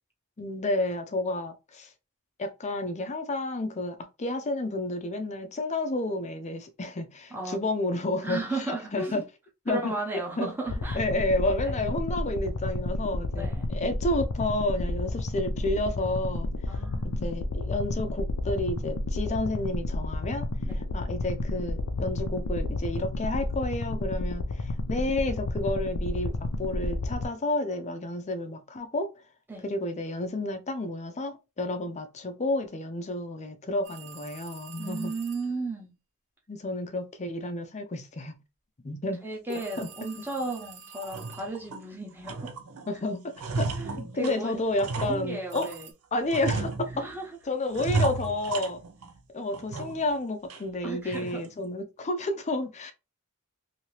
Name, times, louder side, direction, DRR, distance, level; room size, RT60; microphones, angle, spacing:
voice 1, 0.4-1.9 2.4-9.2 9.7-10.0 10.4-10.5 10.9-16.5 17.2-20.5 20.9-29.1 29.6-35.1 36.5-38.4 38.8-39.2 39.8-39.9 42.9-43.7 44.0-45.7 46.1-47.1 47.5-48.8 49.3-52.9, left 2 dB, 30° left, 0.5 m, -31 dB
voice 2, 8.2-9.2 9.7-11.0 11.6-11.8 13.3-13.7 16.7-17.4 20.7-20.8 29.5-29.6 34.8-36.0 39.2-42.5 43.8-44.6 44.9-45.9 46.9-47.3 48.5-48.7 50.8-51.4, right 2 dB, 10° right, 1.0 m, -35 dB
sound 1, 10.7-27.3, left 2 dB, 85° left, 0.5 m, -31 dB
sound 2, 33.8-35.6 39.5-41.8 45.5-45.9, right 6 dB, 55° right, 0.8 m, -48 dB
sound 3, 39.8-39.9 40.4-40.5 40.9-41.9 42.2-42.9 43.1-45.8 46.3-47.2 47.7-49.2 49.5-50.1 50.5-50.6 51.1-51.5, right 3 dB, 90° right, 0.6 m, -33 dB
2.8 x 2.8 x 3.1 m
head